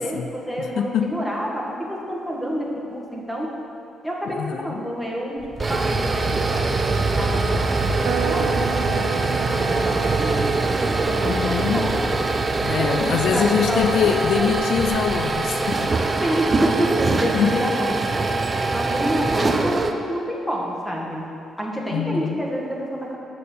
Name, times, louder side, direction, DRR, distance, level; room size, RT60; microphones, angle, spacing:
voice 1, 0.0-3.5 4.0-12.2 12.7-14.5 16.2-18.2 18.7-21.3 21.6-23.2, equal, 5° left, -3 dB, 1.6 m, -28 dB
voice 2, 0.8-1.2 4.3-4.8 11.2-12.0 12.6-15.9 17.3-17.6 21.9-22.4, left 8 dB, 70° left, 7 dB, 0.4 m, -24 dB
sound 1, 5.4-19.9, right 3 dB, 30° right, 0.5 m, -23 dB
sound 2, 8.0-13.8, right 11 dB, 75° right, 0.3 m, -34 dB
8.3 x 4.5 x 6.7 m, 2.7 s
cardioid pair, 90°, 0 cm